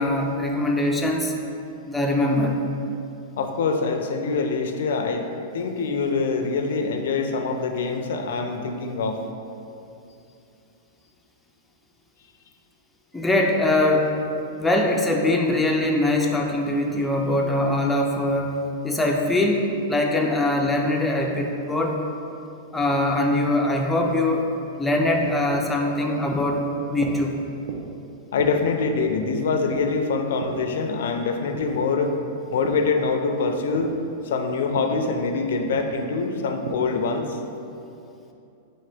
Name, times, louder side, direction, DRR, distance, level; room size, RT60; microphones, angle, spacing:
voice 1, 0.0-1.3 1.8-2.6 13.1-14.2 14.6-22.0 22.7-24.5 24.8-27.4, left 1 dB, 5° left, 0 dB, 0.3 m, -22 dB
voice 2, 3.4-5.3 5.5-9.2 28.3-32.1 32.5-33.9 34.2-37.4, left 4 dB, 75° left, 5 dB, 0.4 m, -24 dB
sound 1, 25.5-32.9 33.2-37.1, right 4 dB, 60° right, 0.5 m, -38 dB
3.9 x 3.8 x 3.3 m, 2.7 s
supercardioid pair, 150°, 0 cm